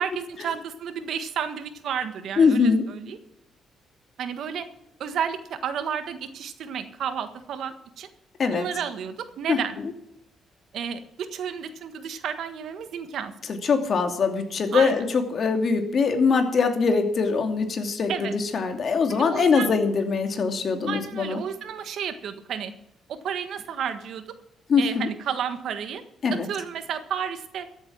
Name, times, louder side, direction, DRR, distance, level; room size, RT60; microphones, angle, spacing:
voice 1, 0.0-3.2 4.2-4.7 5.0-8.1 8.5-9.8 10.7-13.3 14.7-15.0 18.1-18.3 19.1-19.7 20.9-22.7 23.1-24.2 24.8-26.0 26.3-27.7, right 8 dB, 70° right, 9 dB, 1.5 m, -31 dB
voice 2, 2.4-2.8 8.4-8.6 9.5-9.6 13.5-21.4 24.7-25.1 26.2-26.5, left 5 dB, 50° left, 5 dB, 2.6 m, -22 dB
14.0 x 8.4 x 7.2 m, 0.78 s
cardioid pair, 90°, 0 cm